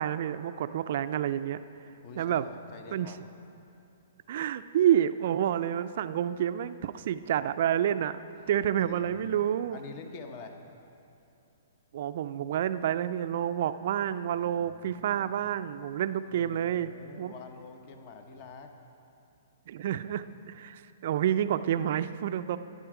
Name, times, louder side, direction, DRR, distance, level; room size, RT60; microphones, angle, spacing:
voice 1, 0.0-1.6 2.2-2.4 2.9-3.1 4.3-8.2 8.5-9.8 11.9-16.9 17.2-17.3 19.7-22.6, right 10 dB, 55° right, 12 dB, 0.4 m, -29 dB
voice 2, 2.0-3.2 8.4-8.5 8.8-9.4 9.7-10.6 14.3-15.4 16.3-18.7, left 4 dB, 40° left, 5 dB, 0.9 m, -47 dB
11.0 x 9.5 x 4.9 m, 2.6 s
hypercardioid pair, 140°, 0 cm